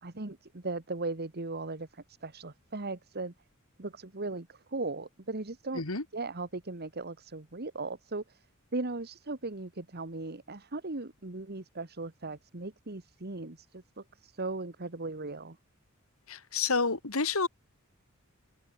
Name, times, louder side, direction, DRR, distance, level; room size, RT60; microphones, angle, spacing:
voice 1, 0.0-3.3 3.8-5.8 6.1-8.4 8.7-15.6, right 3 dB, 50° right, 1.7 m, -38 dB
voice 2, 16.3-17.5, left 4 dB, 75° left, 2.5 m, -29 dB
head